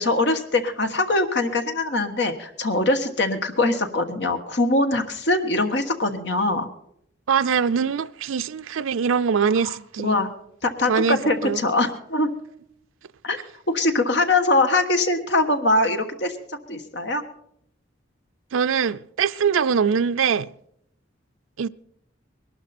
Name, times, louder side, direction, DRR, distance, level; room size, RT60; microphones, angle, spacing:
voice 1, 0.0-6.7 9.5-9.7 10.0-10.3 10.6-12.3 13.2-13.4 13.7-16.4 16.7-17.2, left 2 dB, 60° left, 1.4 m, -22 dB
voice 2, 7.3-10.2 10.9-11.6 18.5-20.5 21.6-21.7, right 6 dB, 85° right, 0.5 m, -23 dB
21.0 x 12.0 x 4.3 m
head